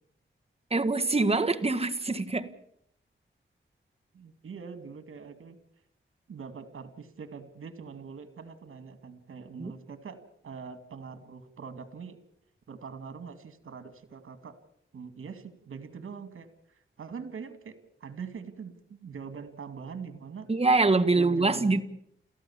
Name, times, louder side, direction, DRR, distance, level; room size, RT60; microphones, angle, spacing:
voice 1, 0.7-2.5 9.6-9.7 20.5-21.8, right 3 dB, 30° right, 1.6 m, -24 dB
voice 2, 4.1-5.6 6.3-12.2 12.7-14.6 14.9-20.5 21.1-21.8, right 6 dB, 90° right, 2.3 m, -43 dB
29.5 x 14.5 x 7.2 m
wide cardioid pair, 80°, 21 cm